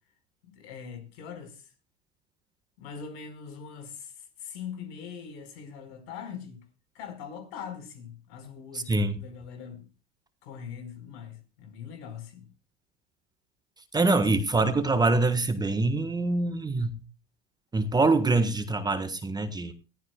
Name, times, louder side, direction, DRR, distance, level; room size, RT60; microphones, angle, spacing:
voice 1, 0.5-1.7 2.8-6.6 6.9-9.9 10.4-12.5, left 7 dB, 75° left, 4.9 m, -42 dB
voice 2, 8.7-9.2 13.9-17.0 17.7-19.7, right 3 dB, 15° right, 1.5 m, -25 dB
21.5 x 14.5 x 2.3 m
supercardioid pair, 125°, 31 cm